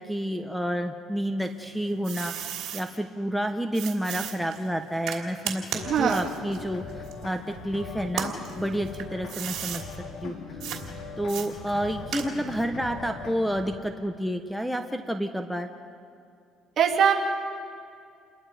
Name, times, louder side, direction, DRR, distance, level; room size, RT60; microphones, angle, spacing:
voice 1, 0.0-5.6 6.0-9.8 10.2-10.3 11.2-15.7, equal, ahead, 4 dB, 1.2 m, -30 dB
sound 1, 1.4-2.8 3.7-7.6 8.1-9.8 10.6-10.8 11.3-12.6, right 9 dB, 70° right, 3.0 m, -36 dB
sound 2, 5.7-13.7, left 4 dB, 70° left, 3.8 m, -40 dB
voice 2, 5.8-6.2 16.8-17.1, right 8 dB, 50° right, 0 dB, 2.9 m, -21 dB
29.0 x 21.5 x 5.1 m, 2.3 s
cardioid pair, 100°, 0 cm